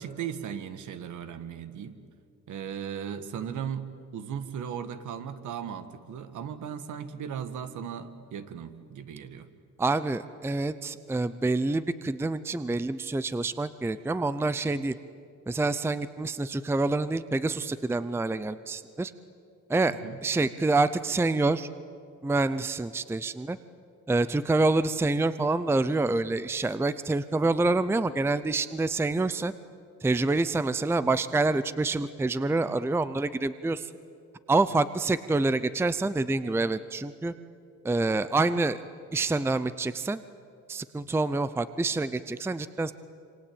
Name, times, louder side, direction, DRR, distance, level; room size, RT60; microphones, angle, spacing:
voice 1, 0.0-2.0 2.5-3.9 4.1-9.5 19.9-20.2, right 8 dB, 60° right, 10 dB, 1.7 m, -37 dB
voice 2, 9.8-14.9 15.5-19.1 19.7-20.0 20.2-21.7 22.2-23.6 24.1-29.5 30.0-33.9 34.5-37.3 37.8-38.8 39.1-40.2 40.7-42.9, right 3 dB, 5° right, 14 dB, 0.6 m, -27 dB
27.0 x 25.0 x 8.8 m, 2.5 s
cardioid pair, 115°, 34 cm